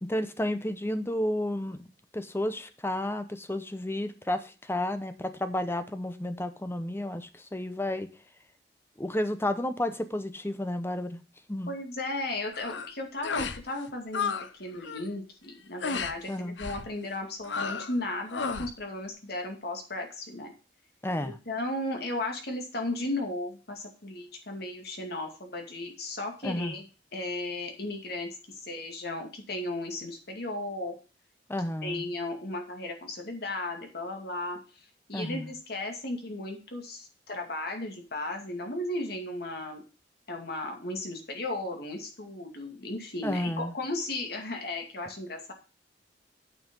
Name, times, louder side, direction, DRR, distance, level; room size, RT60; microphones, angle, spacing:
voice 1, 0.0-1.9 2.1-8.1 9.0-11.2 11.5-11.7 16.3-16.6 21.0-21.4 26.4-26.8 31.5-32.1 35.1-35.5 43.2-43.7, left 1 dB, 15° left, 10 dB, 0.8 m, -31 dB
voice 2, 11.7-14.3 14.6-20.5 21.2-26.9 27.1-31.0 31.8-39.8 40.3-45.5, left 2 dB, 60° left, 3 dB, 2.3 m, -35 dB
sound 1, 12.5-12.9 13.2-13.6 13.9-14.5 14.7-15.1 15.8-16.2 16.6-16.9 17.4-18.0 18.3-18.7, left 5 dB, 85° left, 0.8 m, -33 dB
9.0 x 5.6 x 5.3 m, 0.34 s
head